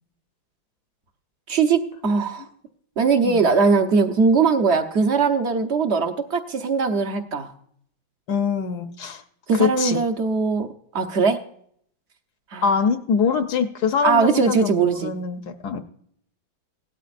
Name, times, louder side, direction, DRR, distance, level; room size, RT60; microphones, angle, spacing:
voice 1, 1.5-2.4 3.0-7.5 9.5-10.7 10.9-11.4 12.5-12.7 14.0-15.1, right 5 dB, 45° right, 6 dB, 1.0 m, -20 dB
voice 2, 8.3-9.2 9.5-10.0 12.6-15.8, left 6 dB, 65° left, 7 dB, 1.3 m, -23 dB
17.0 x 12.5 x 2.5 m, 0.65 s
omnidirectional pair, 2.1 m